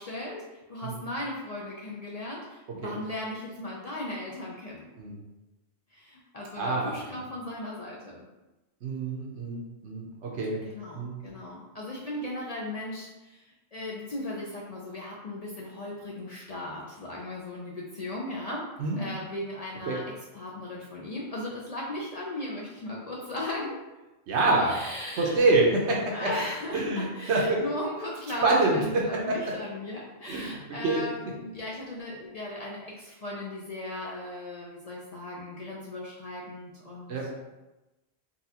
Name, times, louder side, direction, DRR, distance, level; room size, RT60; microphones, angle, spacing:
voice 1, 0.0-4.9 5.9-8.3 10.5-18.7 19.0-20.0 20.3-23.8 24.3-25.5 26.1-37.3, left 1 dB, 50° left, -4 dB, 0.5 m, -37 dB
voice 2, 6.6-6.9 8.8-10.6 10.9-11.2 18.8-19.0 19.9-20.0 24.3-24.7 25.2-26.3 26.7-27.6 28.4-29.3 30.3-30.5 30.8-31.0 37.1-37.2, right 2 dB, 80° right, -2 dB, 1.1 m, -26 dB
4.0 x 2.3 x 2.7 m, 1.0 s
omnidirectional pair, 1.1 m